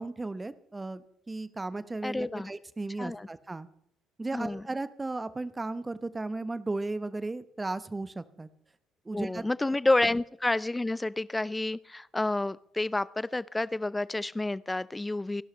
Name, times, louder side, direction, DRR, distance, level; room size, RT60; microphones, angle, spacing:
voice 1, 0.0-3.7 4.2-8.5 9.0-9.4, right 2 dB, 20° right, 15 dB, 1.1 m, -35 dB
voice 2, 2.0-2.5 3.0-3.3 4.3-4.6 9.1-15.4, left 2 dB, 15° left, 21 dB, 0.6 m, -29 dB
30.0 x 11.5 x 3.3 m, 0.75 s
figure-of-eight pair, 50°, 0 cm